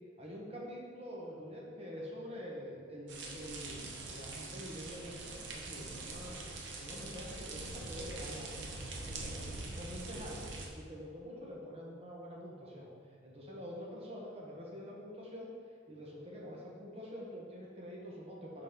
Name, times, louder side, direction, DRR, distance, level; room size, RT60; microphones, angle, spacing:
voice 1, 0.2-9.3 9.8-12.9 13.2-15.5 15.9-18.6, equal, 30° right, -3 dB, 1.2 m, -46 dB
sound 1, 3.1-10.7, right 2 dB, 65° right, 0.8 m, -44 dB
5.6 x 4.2 x 5.4 m, 2.2 s
head